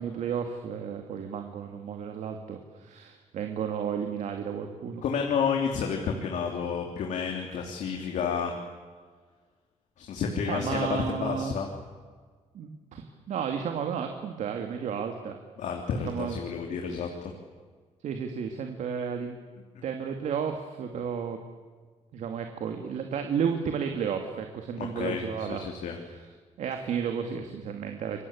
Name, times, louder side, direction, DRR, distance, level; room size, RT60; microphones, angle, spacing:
voice 1, 0.0-5.0 10.4-11.5 12.5-15.4 16.0-16.4 17.0-17.1 18.0-19.4 19.8-21.4 22.1-25.6 26.0-26.3 26.6-28.2, right 7 dB, 75° right, 5 dB, 2.4 m, -32 dB
voice 2, 5.0-8.5 10.0-11.7 15.6-17.3 24.8-26.0, left 6 dB, 80° left, 2 dB, 3.3 m, -30 dB
28.0 x 23.5 x 8.6 m, 1.5 s
cardioid pair, 145°, 12 cm